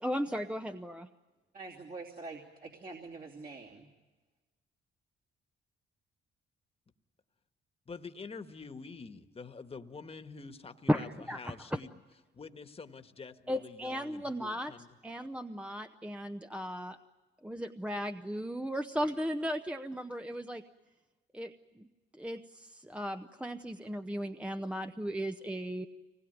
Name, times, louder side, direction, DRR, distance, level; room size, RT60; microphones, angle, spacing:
voice 1, 0.0-1.1 10.9-11.5 13.5-14.7 15.0-17.0 17.4-20.6 21.3-21.5 21.8-21.9 22.2-25.9, equal, 5° right, 7 dB, 0.8 m, -36 dB
voice 2, 1.5-3.9, right 3 dB, 45° right, -2 dB, 2.9 m, -45 dB
voice 3, 7.9-12.0 12.3-14.9, left 4 dB, 30° left, 9 dB, 1.5 m, -47 dB
25.0 x 20.0 x 9.4 m, 1.3 s
cardioid pair, 90°, 20 cm